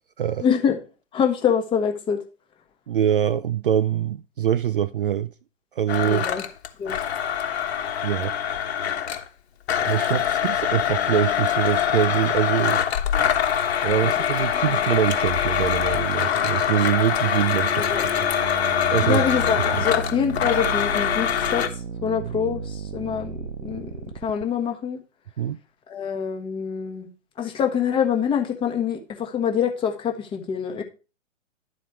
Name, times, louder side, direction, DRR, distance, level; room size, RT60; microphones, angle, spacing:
voice 1, 0.4-0.8 1.1-2.2 6.0-6.4 6.8-7.0 14.0-14.1 14.5-14.8 17.8-18.0 19.0-21.7 22.0-25.0 25.9-27.1 27.4-30.8, left 7 dB, 15° left, 1.0 m, -25 dB
voice 2, 2.9-5.3 5.8-6.3 8.0-8.3 9.8-12.8 13.8-17.9 18.9-19.2 19.7-19.9 25.4-25.6, right 10 dB, 45° right, 0.4 m, -24 dB
Domestic sounds home sounds, 5.9-9.3 9.7-21.7, left 9 dB, 55° left, 1.3 m, -24 dB
sound 1, 15.7-24.4, right 5 dB, 65° right, 0.8 m, -35 dB
11.5 x 4.2 x 4.6 m
figure-of-eight pair, 130°, 39 cm